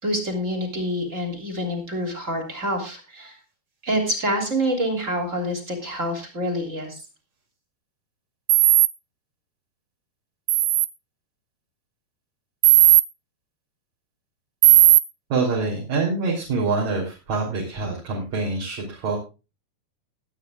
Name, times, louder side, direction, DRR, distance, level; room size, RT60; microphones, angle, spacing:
voice 1, 0.0-3.4 3.8-7.0, equal, 20° right, 3 dB, 2.9 m, -27 dB
sound 1, 8.5-8.9 10.5-10.9 12.6-13.0 14.6-15.0, right 17 dB, 75° right, 2.3 m, -14 dB
voice 2, 15.3-19.2, right 3 dB, 45° right, -3 dB, 4.3 m, -25 dB
21.5 x 9.4 x 2.3 m, 0.30 s
omnidirectional pair, 4.7 m